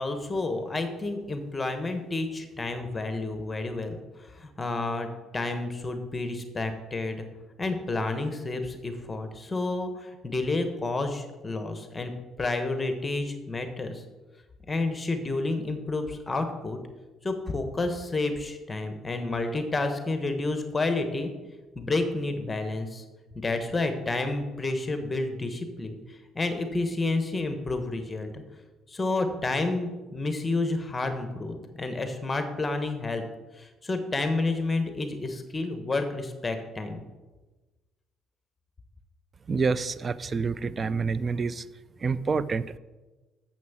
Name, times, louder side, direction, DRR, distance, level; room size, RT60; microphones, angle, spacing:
voice 1, 0.0-5.1 5.3-7.3 7.6-12.1 12.4-14.0 14.7-16.8 17.2-21.3 21.8-23.0 23.3-28.4 28.9-33.2 33.6-37.0, left 2 dB, 20° left, 7 dB, 1.2 m, -30 dB
voice 2, 39.5-41.7 42.0-42.8, right 4 dB, 35° right, 17 dB, 0.4 m, -27 dB
7.1 x 6.1 x 7.3 m, 1.2 s
cardioid pair, 105°, 0 cm